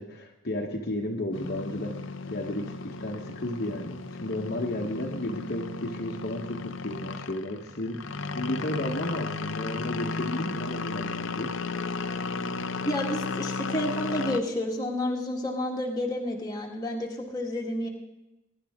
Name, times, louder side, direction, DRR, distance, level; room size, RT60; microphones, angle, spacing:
voice 1, 0.0-1.9 2.3-11.6, left 1 dB, 50° left, 1 dB, 1.1 m, -33 dB
sound 1, 1.3-14.4, left 4 dB, 75° left, 0.6 m, -34 dB
voice 2, 12.8-17.9, left 1 dB, 20° left, -1 dB, 1.8 m, -30 dB
21.5 x 11.0 x 3.6 m, 0.97 s
head